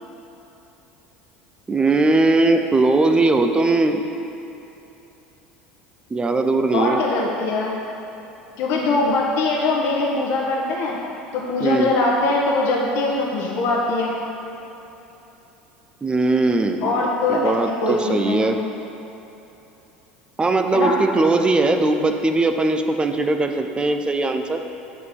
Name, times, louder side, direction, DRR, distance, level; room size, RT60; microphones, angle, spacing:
voice 1, 1.7-4.1 6.1-7.0 11.6-11.9 16.0-16.9 17.3-18.6 20.4-24.6, right 2 dB, 20° right, 6 dB, 0.7 m, -19 dB
voice 2, 6.7-7.8 8.6-11.0 11.3-14.1 16.8-18.5 20.7-21.0, left 2 dB, 55° left, -2 dB, 1.2 m, -22 dB
8.0 x 4.7 x 7.1 m, 3.0 s
hypercardioid pair, 75°, 5 cm